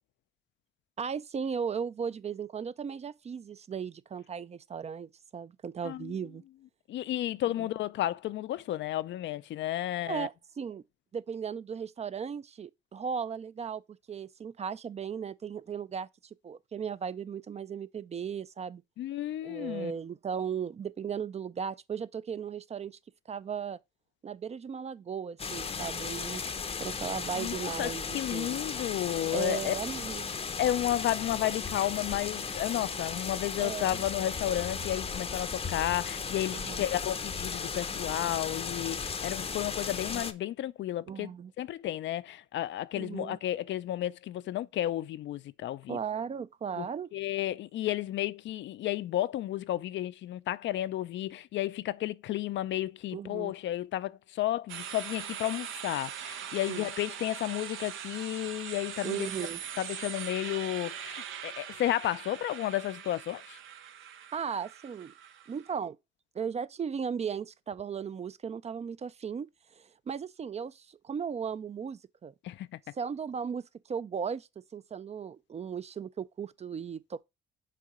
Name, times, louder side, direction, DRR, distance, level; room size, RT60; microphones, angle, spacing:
voice 1, 1.0-6.4 7.6-7.7 10.0-10.8 11.1-13.8 14.1-16.1 16.4-18.8 19.4-23.0 23.3-23.8 24.2-26.4 26.8-28.6 29.3-30.3 33.6-34.0 36.5-36.8 41.1-41.5 42.9-43.4 45.9-47.1 53.1-53.5 56.7-56.9 59.0-59.6 64.3-65.1 65.5-66.0 66.3-69.5 69.8-72.3 72.9-77.2, right 7 dB, 35° right, 0.4 m, -36 dB
voice 2, 6.9-10.3 19.0-19.9 27.3-29.7 30.6-41.3 41.6-46.0 46.8-46.9 47.1-59.3 59.8-63.6 72.4-72.7, left 13 dB, 70° left, 0.4 m, -32 dB
sound 1, 25.4-40.3, left 5 dB, 30° left, 0.7 m, -36 dB
sound 2, 54.7-65.7, right 9 dB, 80° right, 0.7 m, -41 dB
6.7 x 3.7 x 4.9 m
cardioid pair, 90°, 20 cm